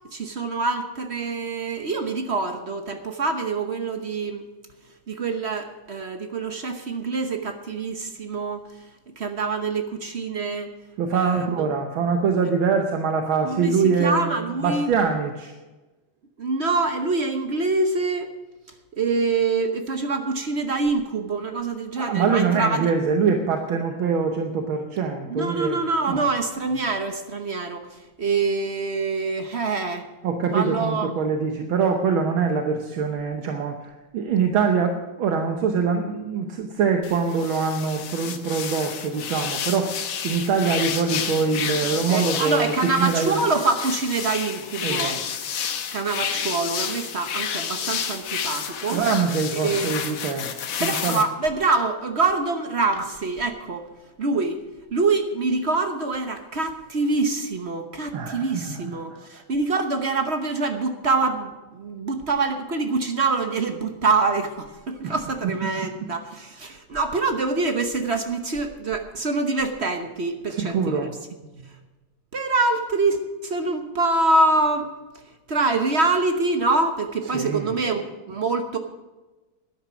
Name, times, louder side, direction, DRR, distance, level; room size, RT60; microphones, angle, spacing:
voice 1, 0.1-4.4 5.1-8.7 9.2-10.7 11.1-11.7 13.4-14.9 16.4-18.3 18.9-22.9 25.3-30.1 30.5-31.1 41.9-45.1 45.9-49.0 49.5-49.9 50.8-53.9 54.2-54.6 54.9-71.1 71.6-71.7 72.3-74.9 75.5-78.8, right 3 dB, 45° right, 6 dB, 0.9 m, -25 dB
voice 2, 11.0-14.3 14.6-15.5 22.0-25.7 26.1-26.2 30.2-40.0 40.2-43.4 44.8-45.2 48.9-50.5 50.8-51.2 58.1-58.8 65.0-65.1 70.5-71.1 77.3-77.7, right 5 dB, 75° right, 4 dB, 1.8 m, -24 dB
sound 1, 37.0-51.2, left 8 dB, 70° left, 1.7 m, -30 dB
12.5 x 10.0 x 6.1 m, 1.1 s
omnidirectional pair, 2.3 m